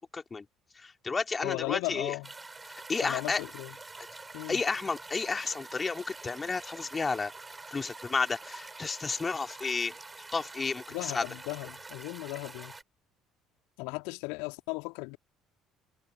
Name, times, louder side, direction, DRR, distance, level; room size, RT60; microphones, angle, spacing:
voice 1, 0.1-0.5 0.7-2.1 2.7-3.4 4.5-7.3 7.7-9.9 10.3-11.2, left 4 dB, 25° left, 3.0 m, -32 dB
voice 2, 1.4-2.3 3.0-3.7 4.3-4.6 10.9-12.7 13.8-15.2, left 31 dB, 60° left, 2.5 m, -36 dB
sound 1, 2.2-12.8, right 3 dB, 15° right, 5.2 m, -46 dB
figure-of-eight pair, 55°, 0 cm